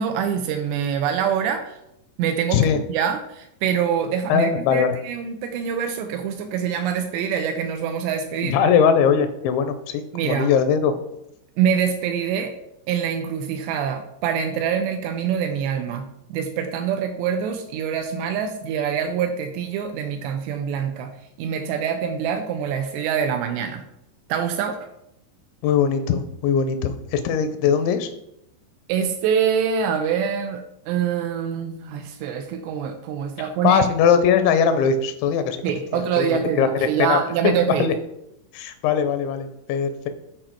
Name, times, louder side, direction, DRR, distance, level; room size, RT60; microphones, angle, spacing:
voice 1, 0.0-1.8 2.2-8.6 10.1-10.5 11.6-12.5 12.9-21.1 21.4-23.8 24.3-24.8 28.9-33.8 35.6-37.9, right 8 dB, 80° right, 6 dB, 2.7 m, -25 dB
voice 2, 4.3-5.0 8.4-11.0 25.6-28.1 33.4-35.6 35.9-38.0 38.5-40.1, left 7 dB, 80° left, 9 dB, 2.9 m, -21 dB
10.0 x 4.2 x 4.5 m, 0.81 s
omnidirectional pair, 5.3 m